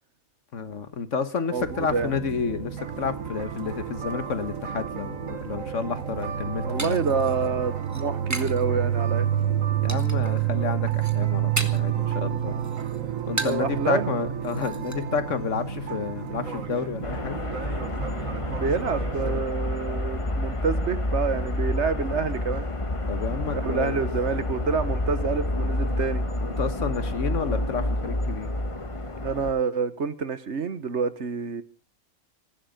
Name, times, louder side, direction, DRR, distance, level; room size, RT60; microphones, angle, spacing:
voice 1, 0.5-7.0 7.4-7.5 9.8-12.7 13.3-17.4 23.1-24.0 26.4-28.5, left 5 dB, 70° left, 12 dB, 1.7 m, -30 dB
voice 2, 1.5-2.1 6.6-9.3 13.3-14.1 18.4-22.7 23.5-26.2 29.2-31.6, right 5 dB, 60° right, 13 dB, 1.5 m, -28 dB
sound 1, 1.6-19.4, right 9 dB, 85° right, 1.8 m, -29 dB
sound 2, 6.1-8.6 9.0-9.5 9.9-10.4 10.7-12.0 12.3-13.8 14.1-14.2 14.4-15.0, right 1 dB, 15° right, 1.3 m, -35 dB
sound 3, 17.0-29.5, left 1 dB, 25° left, 1.3 m, -29 dB
18.5 x 15.0 x 5.2 m, 0.38 s
omnidirectional pair, 1.3 m